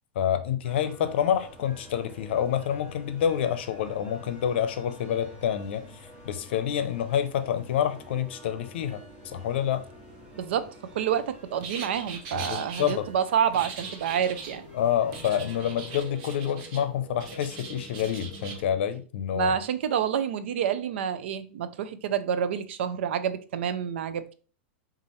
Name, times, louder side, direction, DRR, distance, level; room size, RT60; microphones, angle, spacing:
voice 1, 0.2-5.8 6.2-9.8 12.3-13.1 14.7-19.5, left 9 dB, 75° left, 0.6 m, -28 dB
sound 1, 0.6-16.0, equal, 20° right, 1.7 m, -49 dB
voice 2, 10.4-14.7 19.3-24.3, right 8 dB, 80° right, 0.5 m, -28 dB
sound 2, 11.6-12.9 13.5-14.6 15.1-16.8 17.2-18.6, right 5 dB, 50° right, 0.9 m, -41 dB
sound 3, 13.4-18.8, right 2 dB, 10° left, 0.7 m, -47 dB
5.4 x 2.5 x 3.1 m
supercardioid pair, 145°, 6 cm